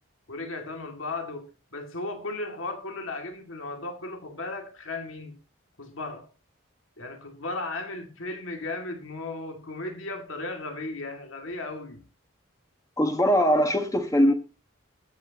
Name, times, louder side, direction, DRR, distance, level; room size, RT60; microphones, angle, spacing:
voice 1, 0.3-1.5 1.7-5.3 5.8-6.3 7.0-12.0, left 2 dB, 75° left, 2.4 m, -35 dB
voice 2, 13.0-14.3, equal, 15° left, 1.2 m, -21 dB
21.0 x 8.4 x 2.9 m
head